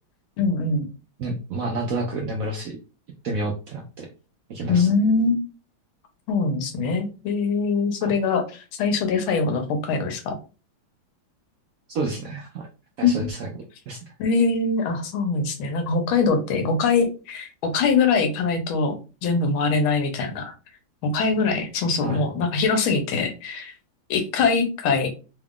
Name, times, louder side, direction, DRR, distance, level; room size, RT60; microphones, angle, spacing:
voice 1, 0.4-0.9 4.7-5.5 6.3-10.4 13.0-13.3 14.2-18.9 19.2-20.5 21.0-23.7 24.1-25.1, left 4 dB, 80° left, 5 dB, 1.6 m, -23 dB
voice 2, 1.2-2.8 3.2-4.1 4.5-4.9 8.0-8.1 11.9-12.7 13.0-13.5 13.9-14.0 22.0-22.2, right 2 dB, 80° right, 1 dB, 0.7 m, -29 dB
3.7 x 2.4 x 3.6 m, 0.32 s
omnidirectional pair, 2.2 m